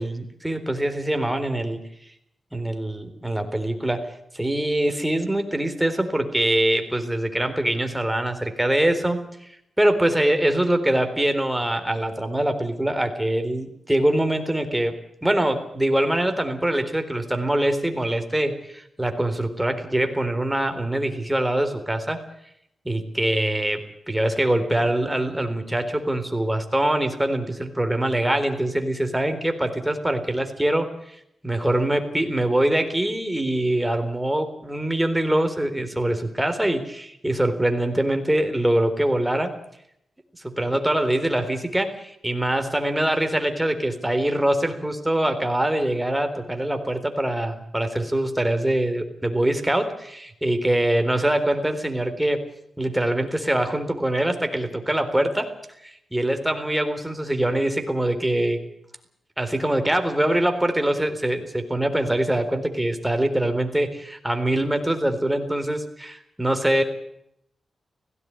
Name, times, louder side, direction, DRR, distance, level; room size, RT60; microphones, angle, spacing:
voice 1, 0.0-1.8 2.5-9.5 9.8-22.2 22.8-31.2 31.4-39.6 40.4-52.4 52.8-55.5 55.8-58.6 59.4-66.8, right 1 dB, 10° right, 7 dB, 3.9 m, -24 dB
17.5 x 16.0 x 9.6 m, 0.73 s
cardioid pair, 60°, 0 cm